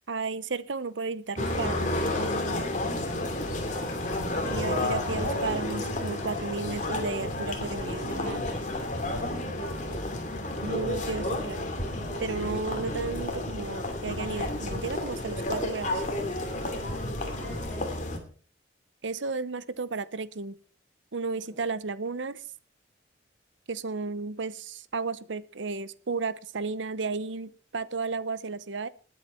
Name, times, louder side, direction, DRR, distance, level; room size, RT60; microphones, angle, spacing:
voice 1, 0.1-1.9 4.4-8.4 10.6-11.6 12.2-16.0 19.0-20.6 21.1-22.4 23.7-28.9, right 4 dB, 80° right, 16 dB, 0.8 m, -33 dB
sound 1, 1.4-18.2, left 1 dB, 40° left, 2.7 m, -31 dB
voice 2, 3.6-4.3 9.1-10.0 10.5-10.9 11.8-12.6 16.6-17.9 21.5-21.7, right 1 dB, 10° left, -4 dB, 6.0 m, -45 dB
20.5 x 8.1 x 4.4 m, 0.41 s
head